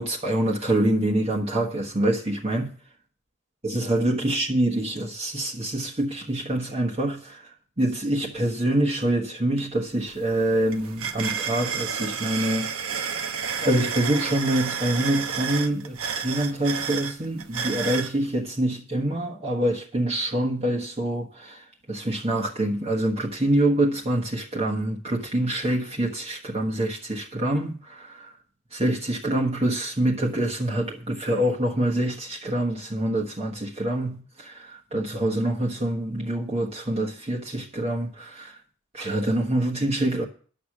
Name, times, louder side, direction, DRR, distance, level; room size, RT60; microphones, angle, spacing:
voice 1, 0.0-2.7 3.6-12.7 13.6-28.4 28.7-38.6 38.9-40.2, right 1 dB, 30° right, 1.4 m, -26 dB
sound 1, 9.6-9.7 10.0-18.1, right 6 dB, 80° right, 1.1 m, -31 dB
11.5 x 6.6 x 7.4 m
head